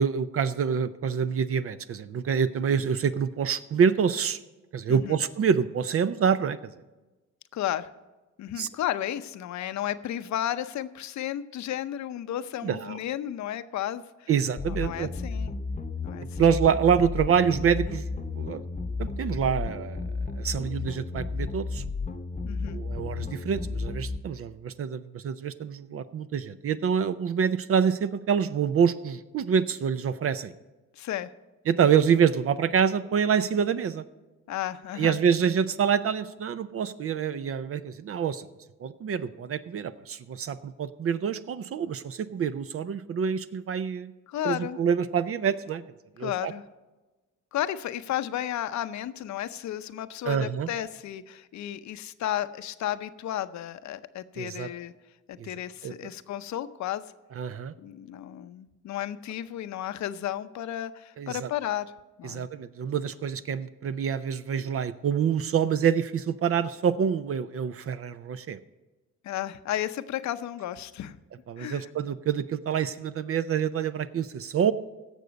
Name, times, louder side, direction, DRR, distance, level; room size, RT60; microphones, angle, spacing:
voice 1, 0.0-4.4 4.7-6.6 8.6-8.7 12.6-13.0 14.3-15.1 16.4-18.6 19.0-20.0 20.3-21.8 22.7-30.5 31.7-34.0 35.0-38.5 38.8-44.1 44.4-45.8 46.2-46.5 50.3-50.7 54.4-54.7 55.4-55.5 55.8-55.9 57.4-57.7 61.2-61.5 62.2-68.6 71.5-74.7, right 7 dB, 50° right, 13 dB, 0.6 m, -26 dB
voice 2, 7.5-7.9 8.4-14.3 14.7-15.5 16.0-16.5 22.4-22.8 30.9-31.3 34.5-35.2 44.3-44.8 46.2-46.6 47.5-54.9 55.3-57.0 57.8-61.9 62.2-62.5 69.2-71.2 71.6-71.9, left 12 dB, 65° left, 12 dB, 0.7 m, -33 dB
sound 1, 14.6-24.2, left 4 dB, 25° left, 0.9 m, -33 dB
16.5 x 6.8 x 5.2 m, 1.2 s
cardioid pair, 90°, 30 cm